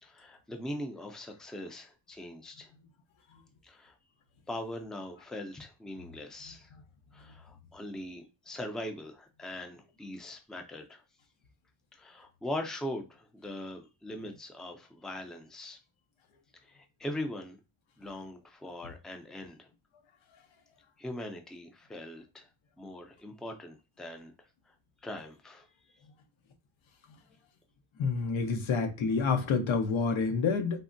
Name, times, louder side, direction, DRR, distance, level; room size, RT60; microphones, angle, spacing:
voice 1, 0.0-2.7 3.6-4.0 4.5-6.7 7.1-11.0 11.9-15.8 16.6-17.6 18.0-19.7 21.0-22.5 22.8-24.3 25.0-25.7, left 1 dB, ahead, 0.4 m, -41 dB
voice 2, 28.0-30.8, left 5 dB, 85° left, 0.7 m, -28 dB
3.5 x 2.1 x 2.5 m
cardioid pair, 80°, 46 cm